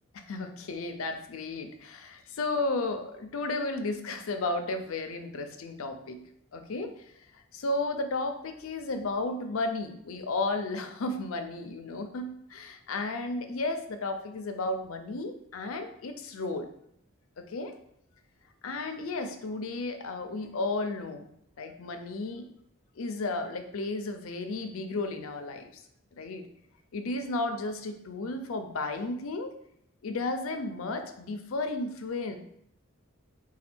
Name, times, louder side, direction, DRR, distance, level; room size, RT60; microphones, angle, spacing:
voice 1, 0.1-6.2 6.5-6.9 7.5-16.7 17.4-17.7 18.6-21.3 21.6-22.5 23.0-25.7 26.2-26.4 26.9-29.5 30.0-32.4, left 2 dB, 70° left, 7 dB, 0.5 m, -33 dB
4.3 x 2.3 x 4.3 m, 0.72 s
head